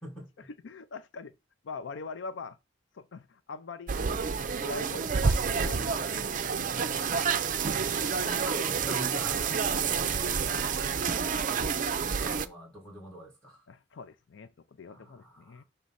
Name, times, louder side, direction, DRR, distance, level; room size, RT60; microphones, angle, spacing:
voice 1, 0.0-0.5 8.0-11.1 12.0-13.7 14.9-15.6, equal, 5° left, 1.5 m, -44 dB
voice 2, 0.6-1.3 1.6-2.6 2.9-4.1 4.6-7.0 7.9-8.1 9.9-10.2 13.7-15.6, left 4 dB, 70° left, 0.4 m, -43 dB
sound 1, 3.9-12.5, right 6 dB, 45° right, 0.5 m, -29 dB
6.2 x 3.4 x 5.5 m
head